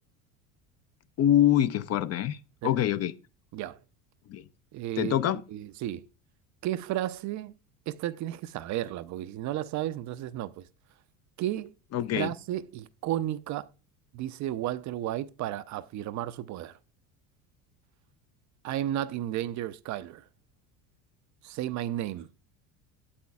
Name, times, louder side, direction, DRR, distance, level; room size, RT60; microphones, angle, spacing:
voice 1, 1.2-2.4 2.6-3.1 4.3-4.4 5.0-5.4 11.9-12.3, left 11 dB, 40° left, 0.5 m, -24 dB
voice 2, 4.7-5.1 5.5-6.1 6.6-7.5 7.9-10.6 11.4-11.7 12.1-13.7 14.1-16.8 18.6-20.2 21.4-22.3, right 13 dB, 45° right, 0.5 m, -33 dB
8.5 x 7.6 x 2.3 m
hypercardioid pair, 85°, 41 cm